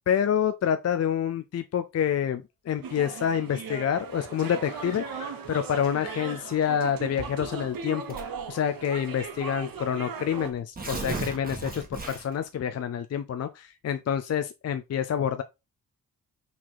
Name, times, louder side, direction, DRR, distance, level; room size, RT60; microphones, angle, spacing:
voice 1, 0.1-8.0 8.5-15.4, left 8 dB, 45° left, 0.5 m, -28 dB
sound 1, 2.8-10.5, right 5 dB, 75° right, 1.0 m, -38 dB
sound 2, 4.6-6.9 7.2-7.3, left 4 dB, 70° left, 1.4 m, -47 dB
Tearing, 8.1-8.5 9.4-9.5 9.8-9.9 10.5-12.5, right 3 dB, 25° right, 1.5 m, -35 dB
4.1 x 2.8 x 4.6 m
cardioid pair, 75°, 35 cm